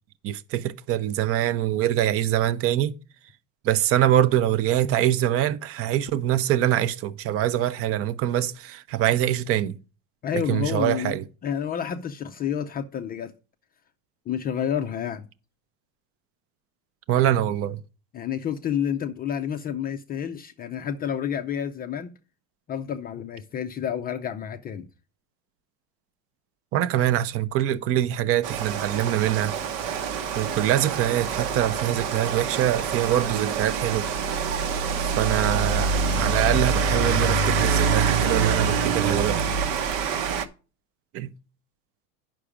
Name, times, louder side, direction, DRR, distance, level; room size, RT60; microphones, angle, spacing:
voice 1, 0.2-2.9 3.6-9.8 10.3-11.2 17.1-17.8 26.7-29.5 30.3-34.1 35.0-39.4 41.1-41.3, right 12 dB, 35° right, 0.6 m, -24 dB
voice 2, 10.2-11.2 11.4-13.3 14.3-15.3 18.1-22.1 22.7-24.9, left 8 dB, 25° left, 0.5 m, -29 dB
Rain, 28.4-40.4, right 5 dB, 70° right, 1.2 m, -25 dB
9.8 x 6.0 x 4.9 m
supercardioid pair, 145°, 41 cm